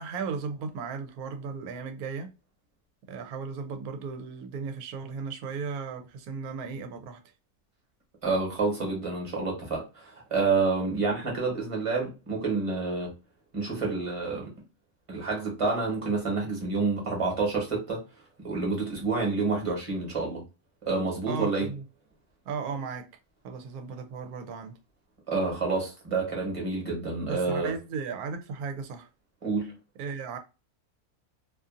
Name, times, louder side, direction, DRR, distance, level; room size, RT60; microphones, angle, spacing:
voice 1, 0.0-2.3 3.1-7.2 21.3-21.8 22.5-23.1 23.4-24.7 27.3-29.1 30.0-30.4, right 5 dB, 75° right, 1.1 m, -35 dB
voice 2, 8.2-13.1 13.5-14.5 15.1-18.0 18.4-20.4 20.8-21.7 25.3-27.7 29.4-29.7, right 3 dB, 25° right, 1.0 m, -28 dB
2.7 x 2.5 x 2.4 m
omnidirectional pair, 1.6 m